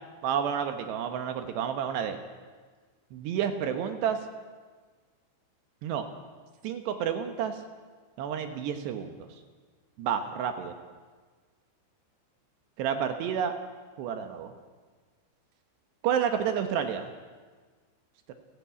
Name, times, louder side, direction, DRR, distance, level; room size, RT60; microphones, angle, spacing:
voice 1, 0.2-2.2 3.1-4.2 5.8-6.1 6.6-7.6 8.2-9.3 10.0-10.7 12.8-13.5 14.0-14.5 16.0-17.1 18.3-18.4, right 8 dB, 70° right, 7 dB, 3.0 m, -30 dB
30.0 x 11.0 x 8.4 m, 1.4 s
omnidirectional pair, 5.6 m